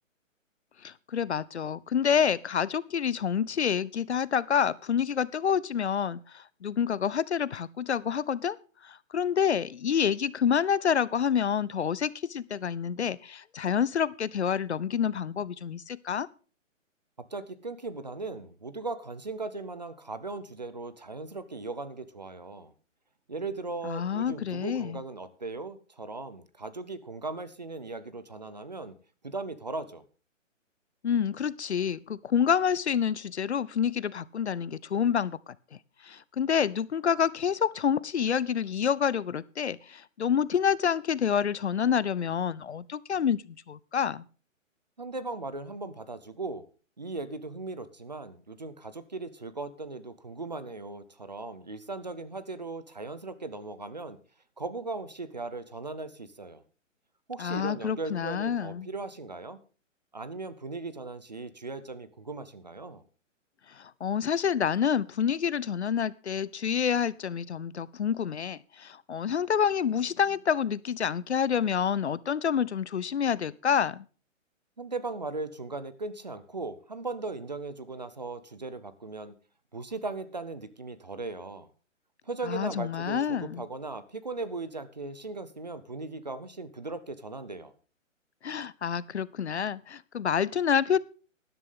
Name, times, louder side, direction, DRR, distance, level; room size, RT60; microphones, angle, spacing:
voice 1, 0.8-8.6 8.8-16.3 23.8-25.0 31.0-35.5 36.0-44.2 57.4-58.9 63.7-74.0 82.4-83.6 88.4-91.0, left 7 dB, 60° left, 21 dB, 0.5 m, -28 dB
voice 2, 17.3-22.7 23.3-28.9 29.2-30.0 45.0-46.6 47.0-54.2 54.6-56.6 57.3-59.6 60.1-63.0 74.8-79.4 79.7-81.7 82.3-87.7, right 3 dB, 35° right, 15 dB, 0.6 m, -38 dB
13.0 x 11.0 x 3.7 m, 0.37 s
hypercardioid pair, 180°, 39 cm